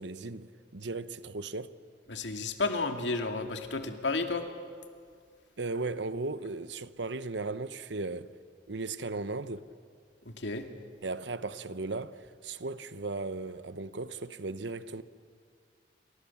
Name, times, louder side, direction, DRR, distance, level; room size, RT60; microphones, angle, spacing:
voice 1, 0.0-1.7 3.8-4.0 5.6-8.3 8.7-9.7 11.0-15.0, right 3 dB, 85° right, 1.0 m, -36 dB
voice 2, 2.1-4.4 10.3-10.6, left 3 dB, 85° left, 2.4 m, -32 dB
29.0 x 27.5 x 7.2 m
head